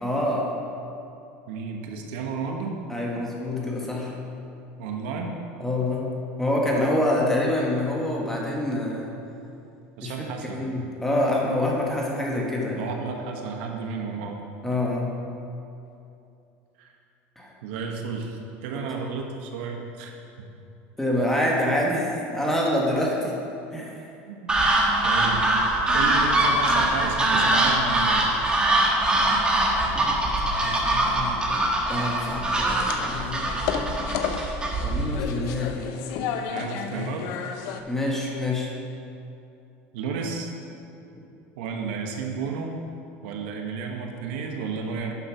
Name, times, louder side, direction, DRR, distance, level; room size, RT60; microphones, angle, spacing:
voice 1, 0.0-0.4 2.9-4.1 5.6-6.1 6.4-9.2 10.0-10.3 10.5-12.9 14.6-15.1 17.4-17.5 18.7-18.8 21.0-23.3 23.7-23.9 30.2-31.6 31.9-33.4 34.8-36.0 36.9-37.1 37.9-38.7, left 1 dB, 5° left, -3 dB, 1.8 m, -26 dB
voice 2, 1.5-2.8 4.8-5.3 10.0-10.6 12.8-14.4 16.8-16.9 17.6-20.1 24.3-24.5 25.0-25.4 25.9-28.2 36.5-37.2 39.9-40.5 41.6-42.8 43.2-45.2, right 5 dB, 80° right, 2 dB, 1.1 m, -32 dB
sound 1, 24.5-35.2, right 1 dB, 15° right, 1.4 m, -23 dB
sound 2, 32.7-37.8, left 7 dB, 70° left, 0.7 m, -32 dB
9.7 x 5.5 x 5.9 m, 2.7 s
supercardioid pair, 120°, 6 cm